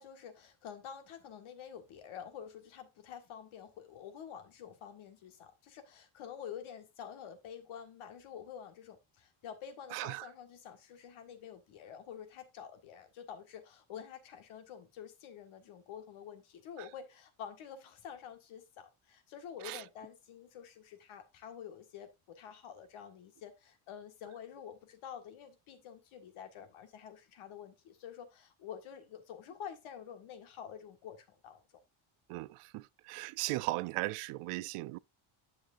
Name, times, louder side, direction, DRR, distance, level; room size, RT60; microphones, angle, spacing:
voice 1, 0.0-31.8, left 8 dB, 70° left, 1.8 m, -48 dB
voice 2, 9.9-10.2 19.6-19.8 32.3-35.0, right 20 dB, 85° right, 0.6 m, -37 dB
10.0 x 6.4 x 2.5 m
cardioid pair, 175°, 50 cm